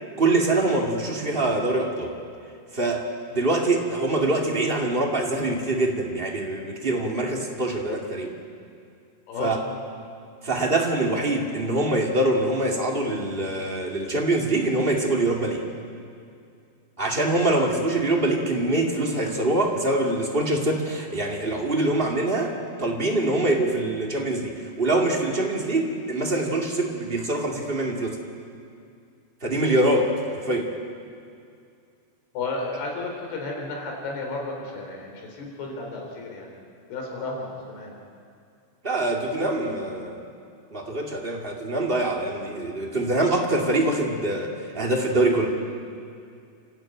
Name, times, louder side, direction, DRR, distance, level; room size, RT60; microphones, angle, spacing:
voice 1, 0.2-2.1 2.7-3.0 3.3-8.3 9.4-9.6 10.4-15.6 17.0-22.5 22.8-28.2 29.4-30.7 38.8-40.2 40.7-45.6, right 2 dB, 25° right, 0 dB, 1.3 m, -24 dB
voice 2, 32.3-36.6 36.9-38.0, left 3 dB, 65° left, 0 dB, 5.8 m, -33 dB
30.0 x 13.0 x 9.2 m, 2.4 s
omnidirectional pair, 4.9 m